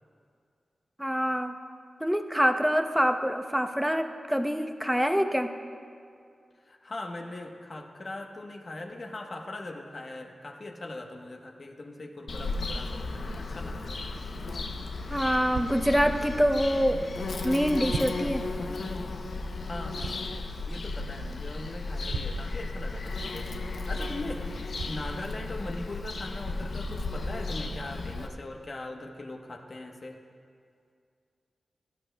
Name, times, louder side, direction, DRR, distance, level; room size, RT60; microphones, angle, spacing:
voice 1, 1.0-1.5 2.0-5.5 15.1-16.9 17.4-18.4, equal, 5° right, 6 dB, 0.7 m, -25 dB
voice 2, 6.6-14.2 19.6-30.2, left 2 dB, 50° left, 3 dB, 1.0 m, -40 dB
Bird vocalization bird call bird song, 12.3-28.3, left 3 dB, 75° left, 0.6 m, -34 dB
sound 1, 15.5-15.7 17.1-17.2 17.9-18.2 20.0-20.3 22.1-22.5 24.7-25.0 26.1-26.2 26.8-27.1, right 5 dB, 85° right, 0.3 m, -37 dB
15.5 x 12.0 x 2.2 m, 2.3 s
cardioid pair, 60°, 0 cm